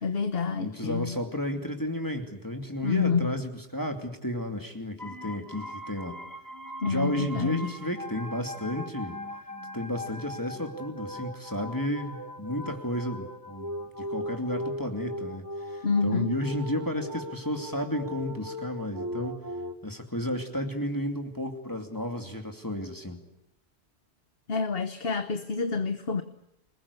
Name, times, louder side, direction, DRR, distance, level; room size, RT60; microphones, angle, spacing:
voice 1, 0.0-1.2 2.8-3.4 6.8-7.7 15.8-16.4 24.5-26.2, left 5 dB, 60° left, 9 dB, 1.4 m, -28 dB
voice 2, 0.6-6.2 6.9-9.2 9.7-19.4 19.8-23.2, left 1 dB, 15° left, 4 dB, 2.6 m, -32 dB
sound 1, 5.0-19.7, left 1 dB, 15° right, 1.8 m, -39 dB
28.5 x 21.0 x 8.3 m, 0.84 s
omnidirectional pair, 1.1 m